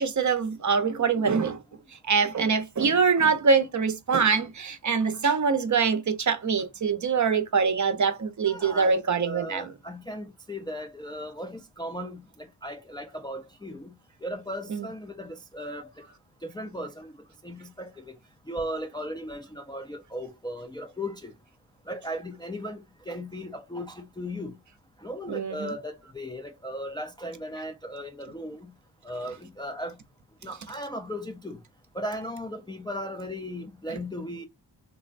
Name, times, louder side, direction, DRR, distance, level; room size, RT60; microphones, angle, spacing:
voice 1, 0.0-1.6 2.1-9.7 14.7-14.8 25.3-25.7, right 5 dB, 45° right, 0.6 m, -24 dB
voice 2, 8.5-13.9 14.2-16.1 16.4-17.1 17.4-18.2 18.5-21.3 21.9-24.5 25.0-28.7 29.0-30.0 30.4-31.6 31.9-34.5, equal, 10° left, 0.3 m, -37 dB
3.4 x 2.1 x 2.4 m
cardioid pair, 60°, 42 cm